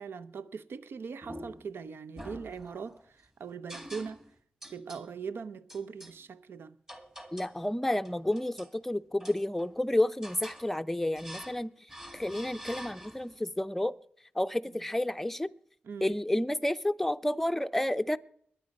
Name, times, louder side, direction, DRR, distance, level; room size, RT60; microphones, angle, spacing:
voice 1, 0.0-4.2 4.7-6.8 15.8-16.2, right 5 dB, 80° right, 0.7 m, -41 dB
sound 1, 1.2-1.7 2.2-3.0 3.7-4.3 4.6-5.1 5.7-6.2 6.9-7.6 8.0-8.8 9.2-9.8 10.2-10.7 11.2-11.6 11.9-13.4, equal, 10° right, 2.0 m, -46 dB
voice 2, 7.3-11.7 12.1-14.0 14.4-15.5 16.0-18.2, left 1 dB, 5° left, 0.5 m, -30 dB
21.5 x 8.6 x 5.3 m
wide cardioid pair, 85°, 4 cm